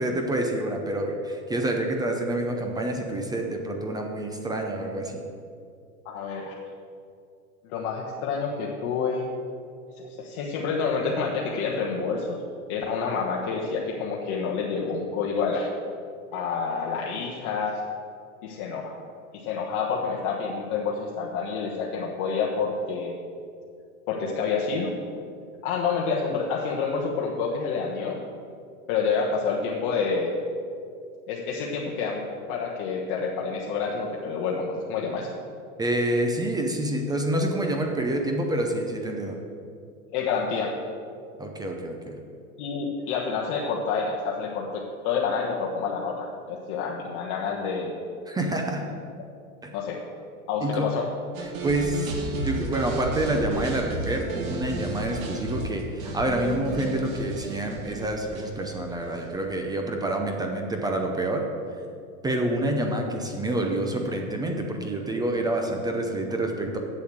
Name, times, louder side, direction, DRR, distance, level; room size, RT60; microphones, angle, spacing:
voice 1, 0.0-5.2 35.8-39.4 41.4-42.2 48.3-48.9 49.6-49.7 50.6-50.9 51.6-61.5 62.2-66.8, right 1 dB, 10° right, 2 dB, 0.6 m, -27 dB
voice 2, 6.0-6.5 7.6-9.3 10.0-12.4 12.7-15.7 16.3-17.8 18.4-18.9 19.3-23.2 24.1-25.0 25.6-28.2 28.9-30.3 31.3-32.2 32.5-35.3 40.1-40.7 42.6-47.9 49.7-50.0 50.5-51.1, left 5 dB, 45° left, -2 dB, 1.2 m, -28 dB
sound 1, 51.3-59.4, right 2 dB, 70° right, 2.1 m, -33 dB
7.8 x 7.0 x 7.8 m, 2.4 s
hypercardioid pair, 135°, 42 cm